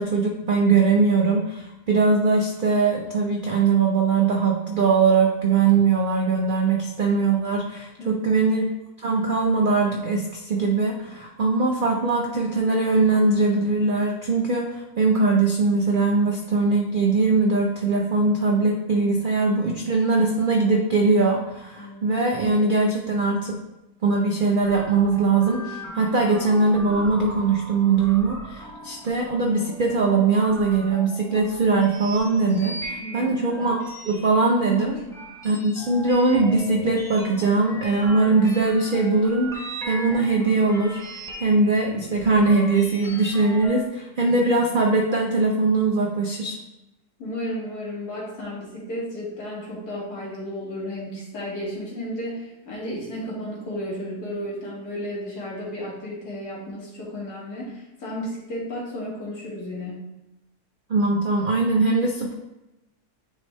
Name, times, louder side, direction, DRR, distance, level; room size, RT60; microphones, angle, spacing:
voice 1, 0.0-8.7 9.0-23.6 24.0-33.8 34.0-35.0 35.4-41.0 41.4-46.6 60.9-62.3, right 3 dB, 85° right, 0 dB, 0.4 m, -21 dB
voice 2, 21.8-22.2 33.0-33.4 34.9-35.3 47.2-60.1, equal, 70° left, -6 dB, 2.3 m, -33 dB
sound 1, 24.6-43.9, right 1 dB, 5° left, 0.4 m, -39 dB
8.8 x 3.4 x 3.1 m, 0.98 s
omnidirectional pair, 1.7 m